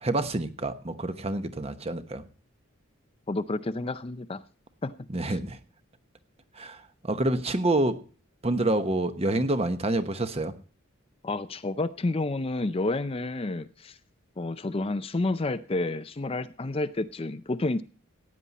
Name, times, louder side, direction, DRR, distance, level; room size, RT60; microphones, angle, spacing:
voice 1, 0.0-2.2 5.1-5.6 6.5-8.0 8.4-10.5, right 2 dB, 30° right, 1.0 m, -27 dB
voice 2, 3.3-4.4 4.8-4.9 5.2-5.4 11.2-14.0 14.4-17.8, left 2 dB, 25° left, 0.5 m, -30 dB
15.5 x 9.7 x 4.1 m
head